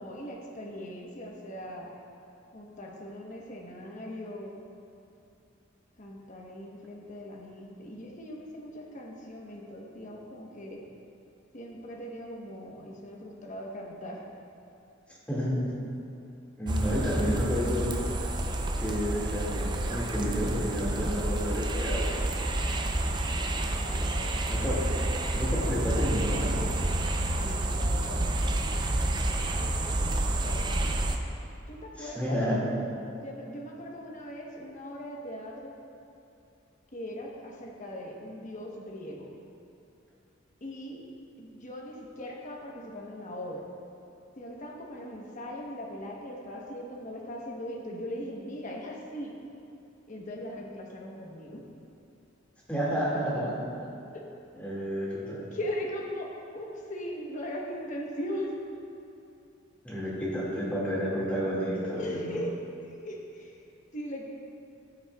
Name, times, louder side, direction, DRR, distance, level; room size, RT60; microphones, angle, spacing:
voice 1, 0.0-1.9 2.5-4.6 6.0-10.8 11.5-14.2 16.9-17.0 23.8-24.4 27.4-28.5 29.4-30.9 31.7-32.4 33.2-35.8 36.9-39.3 40.6-41.0 41.4-43.7 44.4-49.4 50.1-51.6 54.1-54.2 55.5-58.5 61.9-63.6 63.9-64.2, equal, 40° left, -1 dB, 1.0 m, -39 dB
voice 2, 15.3-15.6 16.6-17.9 18.8-22.2 24.5-24.8 25.3-26.7 32.0-32.6 52.7-53.7 54.5-55.4 59.8-62.3, equal, 5° left, -7 dB, 2.0 m, -30 dB
sound 1, 16.7-31.2, right 1 dB, 25° right, 0.5 m, -29 dB
13.5 x 7.3 x 2.3 m, 2.8 s
head